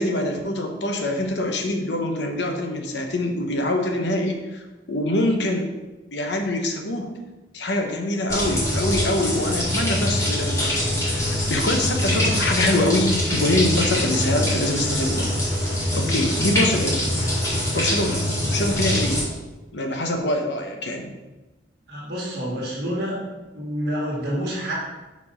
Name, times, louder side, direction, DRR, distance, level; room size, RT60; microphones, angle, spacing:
voice 1, 0.0-4.6 4.9-5.7 6.1-7.1 7.5-15.3 15.9-17.1 17.7-19.2 19.7-21.1, left 1 dB, 65° left, 3 dB, 0.9 m, -24 dB
sound 1, 8.3-19.2, left 1 dB, 15° left, 1.8 m, -24 dB
voice 2, 21.9-23.2 23.5-24.7, equal, 60° right, -4 dB, 1.7 m, -28 dB
4.7 x 4.7 x 5.5 m, 1.1 s
head